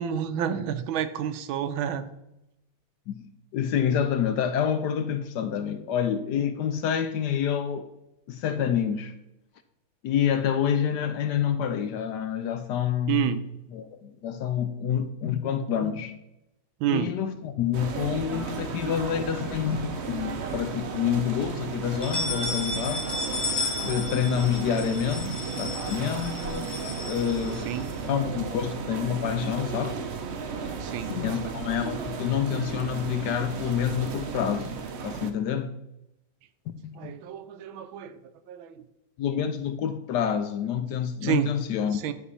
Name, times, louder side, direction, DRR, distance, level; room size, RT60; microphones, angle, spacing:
voice 1, 0.0-2.1 13.1-13.4 16.8-17.1 27.6-27.9 30.8-31.5 36.9-38.2 38.5-38.8 41.2-41.5 41.9-42.1, right 10 dB, 85° right, 1.5 m, -29 dB
voice 2, 3.5-7.9 8.3-9.1 10.0-13.3 13.7-16.2 16.9-23.0 23.8-26.8 27.0-27.7 28.0-30.0 31.1-34.8 35.0-35.8 36.8-37.1 39.2-42.0, left 8 dB, 70° left, 1.1 m, -28 dB
sound 1, 17.7-35.3, right 5 dB, 60° right, 0.6 m, -34 dB
sound 2, 19.4-20.3 20.7-20.8 21.1-21.2 21.8-28.0, left 2 dB, 15° left, 1.6 m, -34 dB
11.0 x 4.7 x 5.5 m
omnidirectional pair, 2.1 m